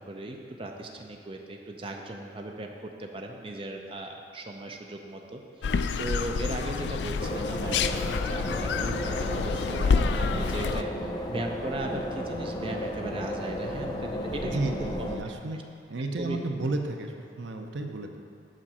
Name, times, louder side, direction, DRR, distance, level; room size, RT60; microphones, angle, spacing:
voice 1, 0.0-5.4 6.0-7.8 8.2-14.6 15.0-15.1 16.2-16.4, right 1 dB, 30° right, 2 dB, 0.5 m, -37 dB
sound 1, 5.6-10.8, left 5 dB, 70° left, 0.3 m, -28 dB
sound 2, 7.2-15.2, equal, 20° left, 0.7 m, -34 dB
voice 2, 14.4-15.6 15.9-18.2, right 2 dB, 80° right, 4 dB, 0.7 m, -32 dB
7.5 x 6.3 x 5.6 m, 2.5 s
head